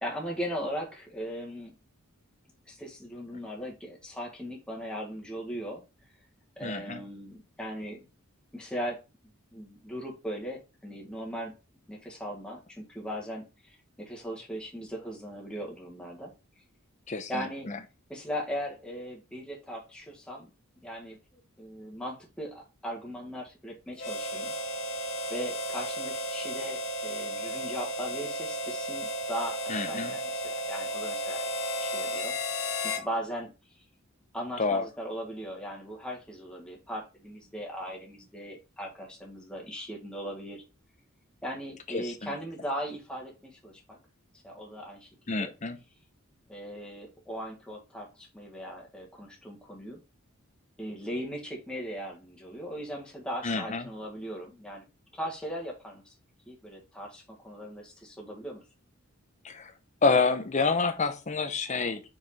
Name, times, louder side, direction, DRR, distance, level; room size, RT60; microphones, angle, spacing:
voice 1, 0.0-1.7 2.7-5.8 6.6-8.1 8.5-9.0 9.5-11.6 11.9-16.3 17.3-17.7 18.1-20.5 20.8-21.2 21.6-24.5 25.3-31.5 31.8-32.4 32.8-33.5 34.3-40.6 41.4-44.0 44.4-45.5 46.5-50.0 50.8-54.9 55.1-56.1 56.5-58.6, equal, 5° left, 1.8 m, -38 dB
voice 2, 6.6-7.0 17.1-17.8 29.7-30.1 34.6-34.9 41.9-42.3 45.3-45.8 53.4-53.8 59.4-59.7 60.0-62.1, left 4 dB, 35° left, 0.9 m, -28 dB
Harmonica, 24.0-33.1, equal, 65° left, 1.1 m, -33 dB
5.8 x 5.1 x 4.3 m
head